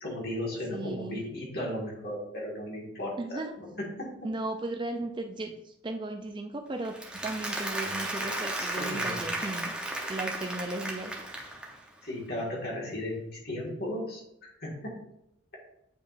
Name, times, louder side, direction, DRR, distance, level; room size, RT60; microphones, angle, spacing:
voice 1, 0.0-4.1 8.6-9.3 10.0-10.1 12.0-15.0, left 1 dB, 55° left, -3 dB, 1.9 m, -36 dB
voice 2, 0.7-1.2 3.2-3.5 4.2-9.7 10.1-11.1, right 2 dB, 25° right, 5 dB, 0.4 m, -36 dB
Applause, 6.8-11.9, right 1 dB, 5° right, 0.8 m, -34 dB
8.6 x 5.0 x 2.5 m, 0.81 s
head